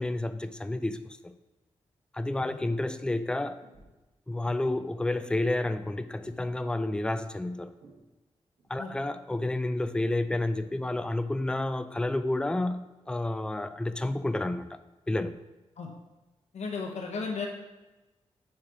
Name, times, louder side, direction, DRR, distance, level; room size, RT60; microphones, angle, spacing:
voice 1, 0.0-1.3 2.1-3.6 4.3-7.7 8.7-14.8 15.1-15.4, left 2 dB, 10° left, 12 dB, 0.3 m, -30 dB
sound 1, 3.6-4.0 4.6-4.9 5.4-5.7 6.0-6.5 6.8-8.0 8.6-8.8 10.5-10.8 11.3-12.4 13.0-13.2, right 2 dB, 80° right, 1.3 m, -57 dB
voice 2, 16.5-17.5, left 4 dB, 70° left, 0 dB, 0.9 m, -35 dB
4.8 x 4.3 x 4.7 m, 1.1 s
cardioid pair, 85°, 12 cm